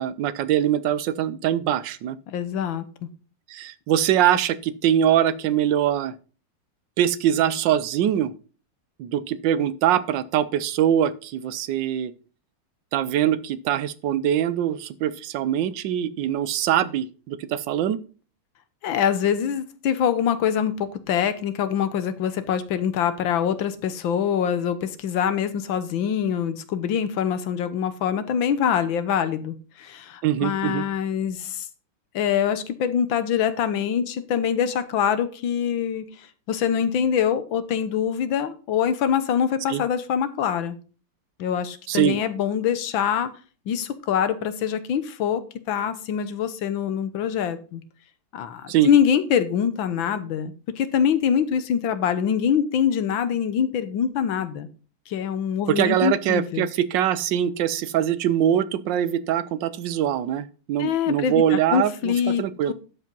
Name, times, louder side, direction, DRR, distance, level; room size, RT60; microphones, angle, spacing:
voice 1, 0.0-2.2 3.5-6.1 7.0-8.3 9.0-12.1 12.9-18.0 30.2-30.8 39.7-39.8 41.9-42.2 48.7-48.9 55.7-62.1 62.4-62.7, right 10 dB, 70° right, 15 dB, 1.3 m, -23 dB
voice 2, 2.3-2.8 18.8-31.7 32.1-40.8 41.4-43.3 43.7-47.8 48.3-54.7 55.1-56.7 60.8-62.7, left 8 dB, 65° left, 12 dB, 1.7 m, -24 dB
12.0 x 5.0 x 5.3 m, 0.37 s
omnidirectional pair, 2.4 m